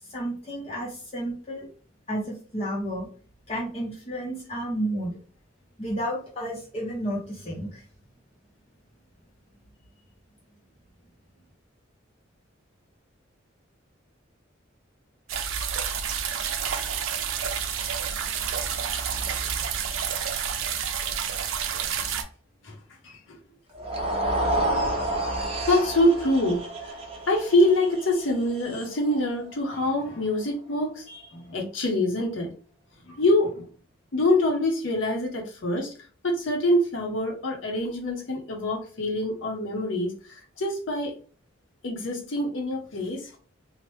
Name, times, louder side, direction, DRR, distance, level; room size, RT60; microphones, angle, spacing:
voice 1, 0.1-1.7 2.1-3.1 3.5-5.2 5.8-7.8, right 1 dB, 30° left, -4 dB, 0.6 m, -31 dB
sound 1, 15.3-22.2, right 7 dB, 80° right, 0.4 m, -29 dB
voice 2, 23.0-23.4 24.5-24.7 25.3-26.6 27.3-32.5 33.0-33.7 34.1-35.9 36.2-41.1 41.8-43.3, left 1 dB, 70° left, 1 dB, 0.7 m, -25 dB
sound 2, 23.7-30.0, right 1 dB, 30° right, 0.5 m, -30 dB
3.1 x 2.0 x 3.1 m, 0.41 s
head